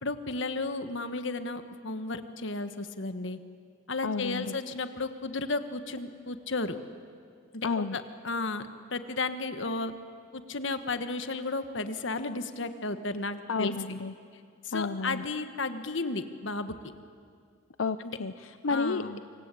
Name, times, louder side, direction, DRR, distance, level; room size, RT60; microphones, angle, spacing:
voice 1, 0.0-3.4 3.9-6.8 7.5-9.9 10.3-13.7 14.6-16.7 18.0-18.2 18.7-19.2, left 3 dB, 65° left, 9 dB, 1.5 m, -33 dB
voice 2, 4.0-4.6 7.6-8.0 13.5-14.1 14.7-15.2 17.8-19.0, left 4 dB, 90° left, 11 dB, 0.7 m, -31 dB
27.0 x 25.5 x 8.5 m, 2.2 s
head